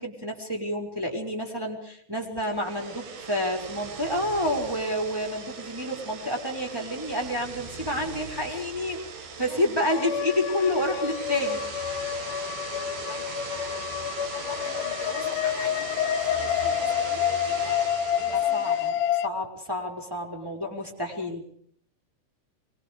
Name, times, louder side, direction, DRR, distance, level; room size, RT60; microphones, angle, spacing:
voice 1, 0.0-9.0 9.4-11.6 18.2-18.9 19.2-21.4, left 1 dB, 5° right, 0 dB, 5.6 m, -29 dB
sound 1, 2.4-18.9, right 5 dB, 75° right, 4.2 m, -39 dB
voice 2, 9.4-9.7 12.0-17.8 18.2-18.8, right 1 dB, 60° right, 1 dB, 8.3 m, -45 dB
sound 2, 9.9-19.3, left 10 dB, 80° left, 2.9 m, -28 dB
26.5 x 24.5 x 5.2 m, 0.66 s
omnidirectional pair, 4.2 m